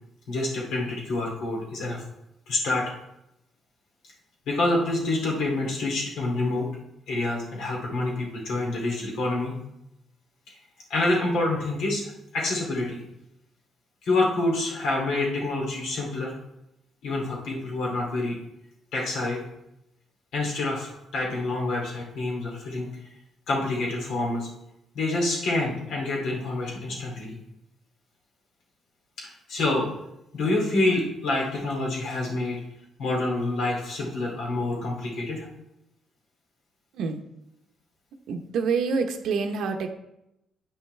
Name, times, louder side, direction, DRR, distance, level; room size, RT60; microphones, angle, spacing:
voice 1, 0.3-2.0 2.5-2.9 4.5-6.7 7.1-9.5 10.5-10.6 10.9-13.0 14.0-16.3 17.0-18.4 18.9-19.4 20.3-22.9 23.5-24.5 24.9-27.4 29.2-29.9 30.3-32.6 33.0-35.5, left 2 dB, 80° left, -2 dB, 2.5 m, -27 dB
voice 2, 36.9-37.2 38.3-39.9, right 5 dB, 75° right, 5 dB, 0.8 m, -27 dB
9.5 x 5.7 x 3.2 m, 0.84 s
cardioid pair, 90°, 0 cm